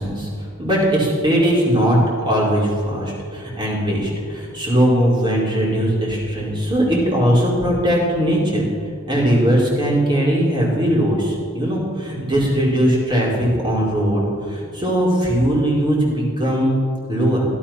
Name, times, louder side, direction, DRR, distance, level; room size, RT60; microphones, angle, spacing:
voice 1, 0.0-8.7 9.1-16.7 17.1-17.5, equal, 20° right, -4 dB, 4.4 m, -19 dB
17.0 x 13.0 x 5.8 m, 2.2 s
head